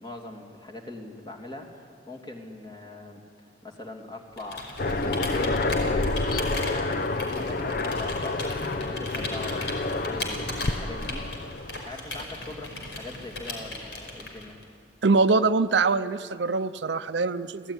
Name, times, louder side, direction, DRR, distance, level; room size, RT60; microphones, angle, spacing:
voice 1, 0.0-3.2 3.6-8.5 8.8-14.6, left 2 dB, 25° left, 2 dB, 2.9 m, -42 dB
Computer keyboard, 4.3-14.6, left 2 dB, 70° left, 5.0 m, -37 dB
Aircraft, 4.8-11.9, left 2 dB, 55° left, 0.8 m, -28 dB
voice 2, 15.0-17.7, right 3 dB, 75° right, 12 dB, 0.7 m, -23 dB
29.5 x 17.0 x 9.9 m, 2.3 s
head